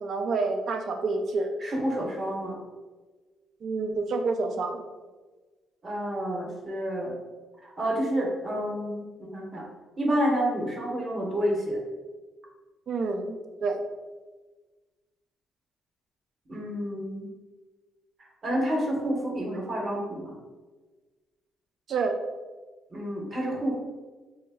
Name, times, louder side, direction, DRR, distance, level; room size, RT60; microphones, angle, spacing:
voice 1, 0.0-1.5 3.6-4.8 12.9-13.8 21.9-22.2, right 3 dB, 65° right, 5 dB, 0.4 m, -28 dB
voice 2, 1.6-2.6 5.8-7.1 7.6-9.7 10.0-11.8 16.5-17.3 18.4-20.4 22.9-23.7, equal, 40° right, -1 dB, 0.9 m, -29 dB
3.2 x 2.1 x 3.4 m, 1.3 s
cardioid pair, 90°, 0 cm